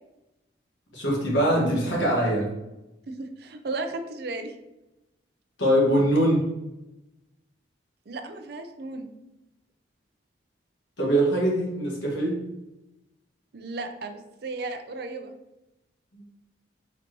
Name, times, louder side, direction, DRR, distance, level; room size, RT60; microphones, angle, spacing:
voice 1, 0.9-2.5 5.6-6.4 11.0-12.4 16.1-16.2, right 1 dB, 85° left, -2 dB, 1.6 m, -22 dB
voice 2, 3.1-4.6 8.1-9.1 13.5-15.3, right 3 dB, 55° right, 6 dB, 0.5 m, -35 dB
4.4 x 4.1 x 3.0 m, 0.96 s
head